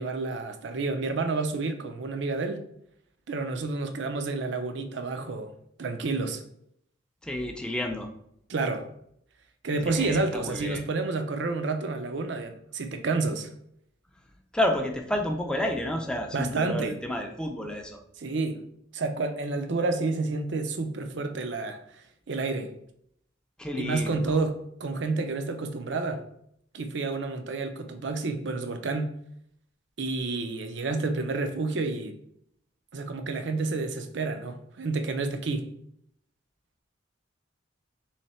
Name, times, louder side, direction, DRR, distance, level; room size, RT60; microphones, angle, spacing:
voice 1, 0.0-2.6 3.3-5.5 5.8-6.4 8.5-8.9 9.6-13.5 16.3-17.0 18.2-18.6 18.9-21.8 22.3-22.7 23.8-26.2 26.7-29.1 30.0-32.1 32.9-35.7, right 3 dB, 65° right, 8 dB, 0.5 m, -29 dB
voice 2, 7.2-8.1 9.8-10.8 14.5-18.0 23.6-24.4, left 1 dB, 5° left, 3 dB, 0.5 m, -30 dB
3.3 x 3.1 x 4.2 m, 0.71 s
head